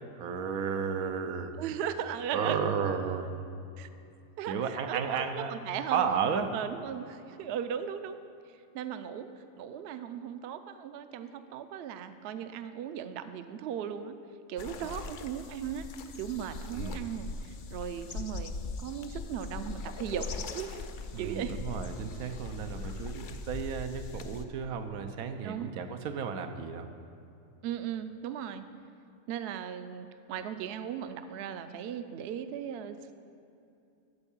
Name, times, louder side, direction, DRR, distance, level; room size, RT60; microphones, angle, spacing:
voice 1, 0.2-1.5 2.3-3.3 4.4-5.6 5.9-6.5 14.8-15.1 16.7-17.0 21.1-26.9, right 6 dB, 90° right, 7 dB, 1.2 m, -33 dB
voice 2, 1.6-2.7 3.8-3.9 4.4-6.1 6.5-8.2 8.7-9.3 9.6-14.1 14.5-15.9 16.2-18.5 18.8-20.8 21.2-21.6 22.8-22.9 25.4-25.7 27.6-28.7 29.3-33.0, right 9 dB, 65° right, 10 dB, 0.7 m, -37 dB
sound 1, 14.6-24.4, left 4 dB, 75° left, 0.4 m, -40 dB
13.5 x 4.5 x 7.2 m, 2.6 s
omnidirectional pair, 1.5 m